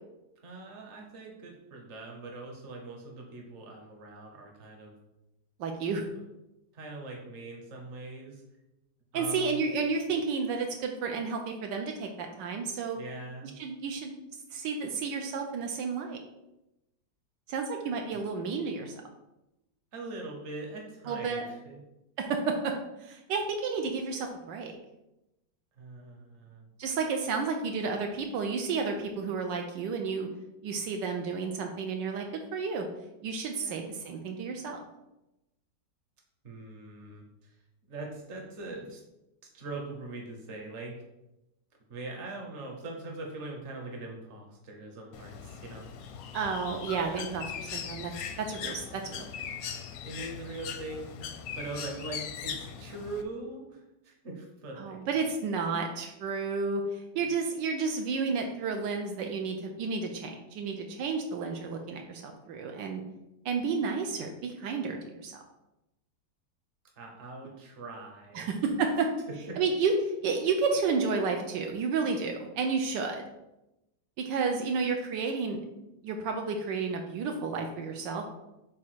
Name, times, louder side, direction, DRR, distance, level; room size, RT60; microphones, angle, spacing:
voice 1, 0.4-4.9 6.7-8.4 9.1-9.7 12.9-13.6 19.9-21.8 25.8-26.7 33.6-33.9 36.4-37.2 37.9-39.0 39.5-41.0 41.9-46.1 50.0-51.2 51.5-55.0 57.1-57.3 67.0-68.5 69.5-69.6, right 2 dB, 45° right, 1 dB, 1.4 m, -42 dB
voice 2, 5.6-6.0 9.1-13.0 13.6-14.1 14.5-16.2 17.5-18.9 21.1-21.4 22.2-22.7 23.0-24.7 26.8-30.3 30.6-32.2 32.5-32.9 33.2-34.8 46.3-48.1 48.4-49.5 54.8-63.0 63.4-65.4 68.3-69.1 69.6-73.2 74.2-75.6 76.0-78.2, right 4 dB, 80° right, 3 dB, 1.3 m, -31 dB
Bird, 45.1-53.2, left 7 dB, 70° left, 0.9 m, -40 dB
6.0 x 3.6 x 4.5 m, 0.93 s
omnidirectional pair, 1.9 m